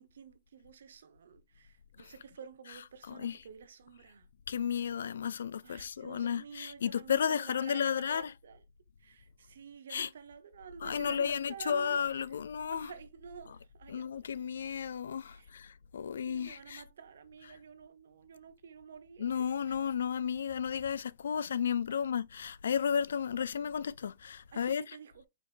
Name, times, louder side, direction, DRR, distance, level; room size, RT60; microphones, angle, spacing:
voice 1, 0.0-4.3 5.6-8.6 9.0-12.0 12.7-14.3 15.3-15.5 16.3-19.8 21.9-22.0 24.5-25.3, right 7 dB, 80° right, 0.9 m, -50 dB
voice 2, 3.1-3.4 4.5-8.3 9.9-10.1 10.8-12.9 13.9-16.8 19.2-24.8, left 7 dB, 85° left, 0.3 m, -33 dB
4.6 x 4.3 x 2.5 m
hypercardioid pair, 155°, 0 cm